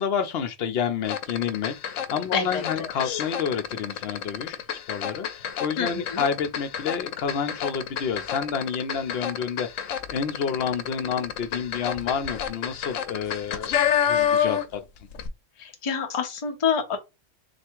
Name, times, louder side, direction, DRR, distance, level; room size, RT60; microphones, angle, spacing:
voice 1, 0.0-4.6 4.9-9.7 10.1-13.7 14.1-14.8, left 7 dB, 60° left, 0.8 m, -29 dB
sound 1, 1.0-14.8 15.1-15.3, left 9 dB, 85° left, 1.0 m, -29 dB
voice 2, 2.3-2.9 5.8-6.2 15.6-17.0, left 6 dB, 35° left, 0.6 m, -27 dB
3.3 x 2.5 x 4.5 m
omnidirectional pair, 1.3 m